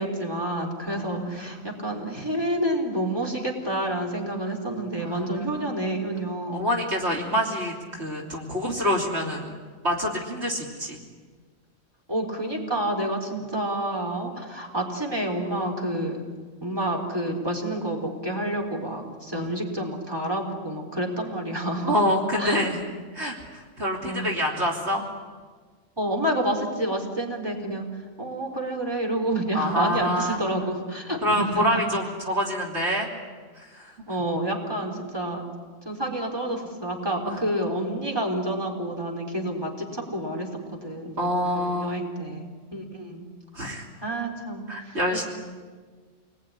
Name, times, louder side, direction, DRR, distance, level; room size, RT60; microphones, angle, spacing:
voice 1, 0.0-6.6 12.1-16.2 16.6-21.9 22.4-22.7 24.0-24.3 26.0-27.9 28.2-31.6 34.1-35.4 35.8-41.3 41.5-43.2 44.0-45.0, right 1 dB, 20° right, 0 dB, 4.2 m, -29 dB
voice 2, 0.8-1.6 5.0-5.8 6.5-9.5 9.8-11.0 19.3-19.5 21.8-22.8 23.1-25.1 29.5-30.7 31.2-33.1 33.6-33.9 37.3-37.4 41.2-42.0 43.5-43.8 44.7-45.2, equal, 55° right, -2 dB, 3.5 m, -27 dB
28.5 x 20.5 x 10.0 m, 1.5 s
omnidirectional pair, 1.4 m